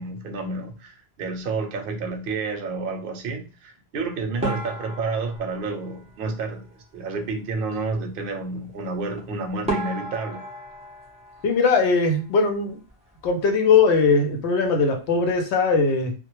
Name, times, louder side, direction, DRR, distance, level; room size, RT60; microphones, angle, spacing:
voice 1, 0.0-10.5, right 3 dB, 60° right, 0.7 m, -30 dB
sound 1, 4.4-6.9 9.1-9.2 9.7-12.4 12.7-13.5 13.8-14.0 14.3-14.4 15.0-15.3, right 1 dB, 5° right, 0.6 m, -34 dB
voice 2, 11.4-12.8 13.2-16.1, left 4 dB, 90° left, 0.9 m, -20 dB
2.1 x 2.1 x 2.9 m
omnidirectional pair, 1.1 m